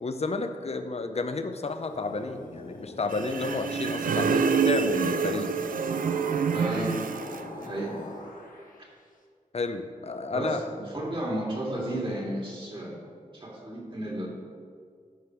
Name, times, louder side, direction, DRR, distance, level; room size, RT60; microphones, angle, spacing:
voice 1, 0.0-5.5 9.5-10.6, left 3 dB, 45° left, 8 dB, 0.7 m, -31 dB
sound 1, 1.6-9.0, left 2 dB, 75° left, 1.1 m, -43 dB
sound 2, 3.1-7.5, right 6 dB, 75° right, 0.5 m, -27 dB
voice 2, 6.5-7.0 7.6-8.0 10.3-13.0 13.3-14.3, right 1 dB, 35° right, -3 dB, 2.3 m, -33 dB
12.0 x 5.1 x 4.6 m, 2.1 s
wide cardioid pair, 75°, 14 cm